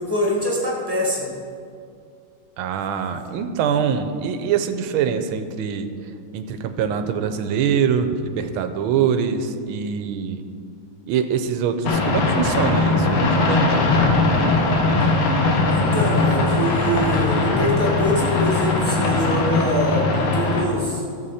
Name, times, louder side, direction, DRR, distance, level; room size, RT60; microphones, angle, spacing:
voice 1, 0.0-1.4 15.7-21.0, equal, 10° right, -3 dB, 1.6 m, -24 dB
voice 2, 2.6-5.9 6.3-10.4 11.1-13.9, right 7 dB, 80° right, 9 dB, 1.5 m, -23 dB
sound 1, 11.8-20.7, left 3 dB, 90° left, 2.0 m, -20 dB
13.5 x 7.1 x 4.2 m, 2.3 s
omnidirectional pair, 2.4 m